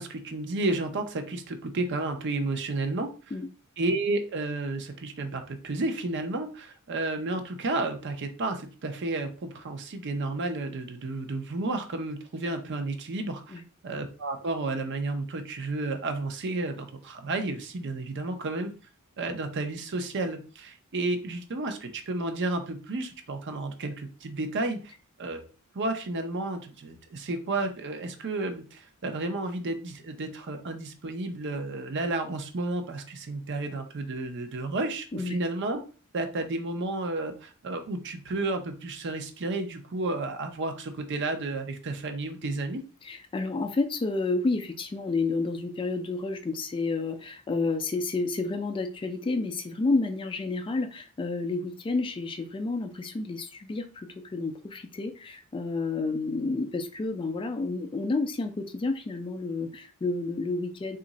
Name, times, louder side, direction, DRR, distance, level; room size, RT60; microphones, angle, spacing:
voice 1, 0.0-3.1 3.8-18.7 19.2-24.9 25.2-25.5 25.7-35.8 36.1-42.8, right 2 dB, 55° right, 6 dB, 0.6 m, -32 dB
voice 2, 43.0-61.0, left 3 dB, 25° left, 6 dB, 0.3 m, -30 dB
3.0 x 2.5 x 3.9 m, 0.36 s
head